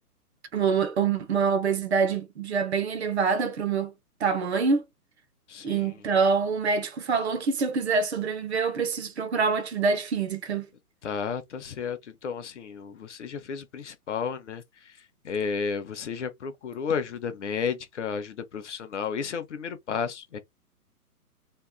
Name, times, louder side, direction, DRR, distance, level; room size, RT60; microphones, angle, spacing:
voice 1, 0.5-3.9 4.2-4.8 5.6-10.7, right 5 dB, 45° right, 0.8 m, -25 dB
voice 2, 5.5-5.9 11.0-14.6 15.2-20.4, left 6 dB, 50° left, 0.8 m, -32 dB
3.2 x 3.1 x 2.2 m
figure-of-eight pair, 130°, 47 cm